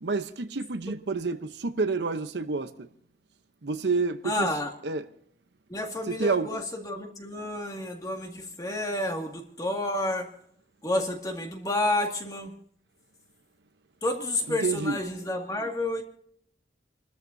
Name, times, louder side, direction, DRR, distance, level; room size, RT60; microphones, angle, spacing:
voice 1, 0.0-2.9 3.6-4.5 4.8-5.0 6.1-6.6 14.5-15.0, right 4 dB, 80° right, 0.8 m, -29 dB
voice 2, 4.2-4.7 5.7-10.3 10.8-12.5 14.0-16.0, left 1 dB, 20° left, 2.0 m, -30 dB
29.0 x 13.5 x 2.7 m
head